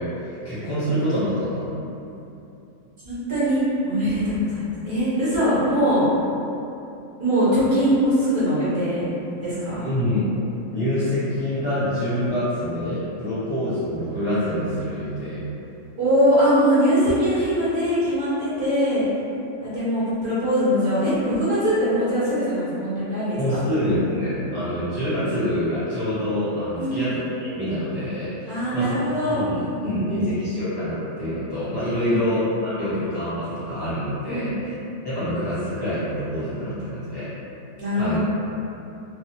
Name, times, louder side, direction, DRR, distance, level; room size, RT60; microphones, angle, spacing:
voice 1, 0.0-1.7 9.8-10.3 10.7-15.4 23.4-34.7 35.0-37.3 37.9-38.2, equal, 25° left, -14 dB, 0.6 m, -26 dB
voice 2, 3.0-6.1 7.2-9.0 9.4-9.8 16.0-19.0 19.6-23.6 26.8-27.1 28.5-30.3 32.0-32.3 34.2-34.9 37.8-38.2, equal, 45° right, -12 dB, 0.8 m, -22 dB
2.3 x 2.3 x 2.8 m, 2.8 s
omnidirectional pair, 1.5 m